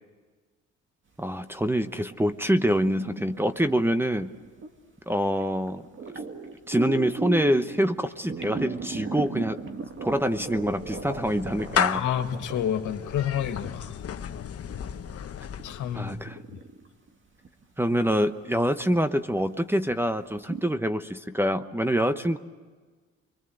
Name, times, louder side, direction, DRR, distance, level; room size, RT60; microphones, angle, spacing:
voice 1, 1.2-4.3 5.1-5.9 6.7-9.6 10.0-12.0 15.9-16.4 17.8-22.4, equal, 5° right, 10 dB, 1.0 m, -25 dB
sound 1, 1.7-4.7 5.1-5.4 5.7-13.6 14.2-14.3 14.7-17.1 17.4-17.6 18.1-18.2 18.9-19.0 19.4-19.5 19.8-19.9 20.4-20.7, right 4 dB, 40° right, 2.4 m, -36 dB
Clapping / Meow, 9.9-16.3, left 8 dB, 50° left, 1.1 m, -34 dB
voice 2, 11.9-14.0 15.6-16.1 16.5-16.6, left 9 dB, 80° left, 6 dB, 2.1 m, -29 dB
26.5 x 23.5 x 7.9 m, 1.4 s
cardioid pair, 90°, 30 cm